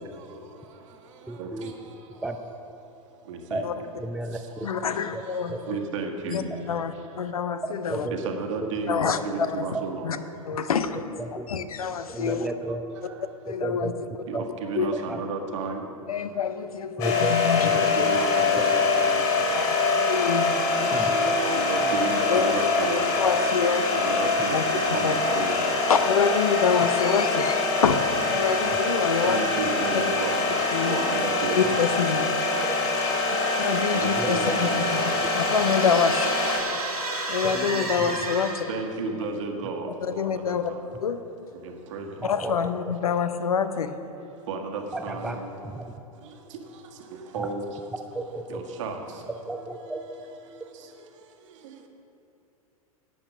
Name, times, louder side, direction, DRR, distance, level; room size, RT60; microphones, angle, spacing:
voice 1, 1.3-1.7 2.2-2.4 3.5-3.6 4.0-4.4 5.1-5.2 5.5-5.6 7.9-8.1 8.6-8.7 11.4-11.5 12.1-12.8 13.6-13.9 14.3-14.4 15.1-15.2 17.0-17.3 20.9-21.3 29.1-29.3 34.2-34.6 37.4-38.2 42.2-42.6 44.9-45.4 45.8-45.9 47.4-47.5 48.1-48.6 49.5-50.0, right 2 dB, 5° right, 5 dB, 0.5 m, -32 dB
voice 2, 3.3-3.6 5.7-6.4 8.2-10.1 14.3-15.8 17.6-18.7 20.9-23.0 23.9-24.6 24.9-25.5 29.2-30.4 30.8-31.6 33.2-33.3 33.9-35.1 38.7-40.2 41.9-42.0 44.5-45.3 47.3-47.6 48.5-49.0, right 4 dB, 55° right, 3 dB, 1.6 m, -32 dB
voice 3, 4.6-5.6 6.3-6.4 6.7-8.1 8.9-9.7 10.0-10.2 10.4-11.2 11.5-12.5 13.0-13.1 13.4-13.9 14.7-14.9 16.1-17.7 18.9-19.0 19.5-21.0 22.3-22.4 22.8-23.9 24.5-24.6 25.0-25.1 25.9-29.4 29.9-30.0 30.7-31.0 31.5-32.4 33.6-36.3 37.1-38.7 40.0-40.7 41.0-41.2 42.2-43.9, left 6 dB, 75° left, 11 dB, 0.7 m, -26 dB
sound 1, 17.0-36.6, left 3 dB, 45° left, 2.9 m, -24 dB
sound 2, 33.0-38.9, right 2 dB, 85° right, 2.1 m, -34 dB
11.5 x 8.5 x 6.0 m, 2.8 s
figure-of-eight pair, 95°, 19 cm